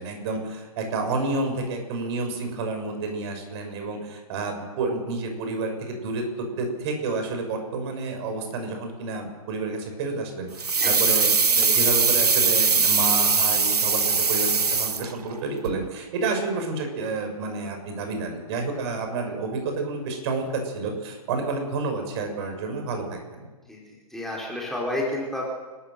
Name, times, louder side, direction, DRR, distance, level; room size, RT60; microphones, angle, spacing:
voice 1, 0.0-23.4, right 3 dB, 45° right, 4 dB, 6.2 m, -30 dB
sound 1, 10.6-15.4 15.7-15.8, right 5 dB, 85° right, 1.3 m, -21 dB
voice 2, 10.8-11.3 23.7-25.5, left 1 dB, ahead, -3 dB, 4.6 m, -31 dB
30.0 x 13.5 x 6.8 m, 1.3 s
figure-of-eight pair, 125°, 20 cm